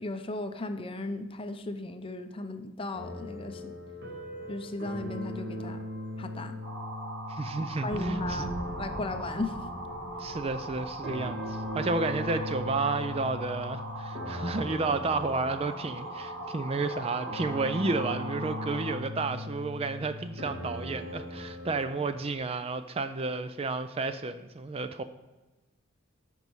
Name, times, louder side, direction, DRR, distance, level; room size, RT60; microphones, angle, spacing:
voice 1, 0.0-3.7 4.5-5.8 6.2-6.6 7.8-9.5, left 2 dB, 25° left, 8 dB, 0.6 m, -36 dB
sound 1, 2.9-22.3, left 1 dB, 50° right, 2.2 m, -39 dB
sound 2, 6.6-19.0, right 1 dB, 85° right, 3.8 m, -40 dB
voice 2, 7.3-8.5 10.2-25.0, right 3 dB, 30° right, 11 dB, 0.4 m, -31 dB
13.5 x 5.5 x 4.6 m, 1.1 s
head